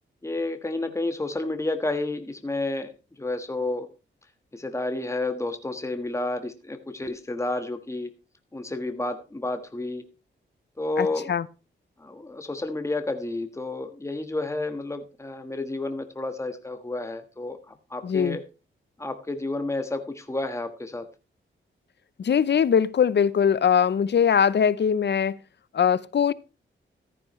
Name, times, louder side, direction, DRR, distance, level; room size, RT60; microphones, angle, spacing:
voice 1, 0.2-2.9 3.2-3.9 4.5-8.1 8.5-10.0 10.8-11.3 12.0-18.4 19.0-21.1, left 2 dB, 15° left, 1.4 m, -30 dB
voice 2, 11.0-11.5 18.0-18.4 22.2-25.4 25.7-26.3, left 7 dB, 55° left, 0.7 m, -21 dB
14.5 x 9.6 x 3.1 m
cardioid pair, 75°, 21 cm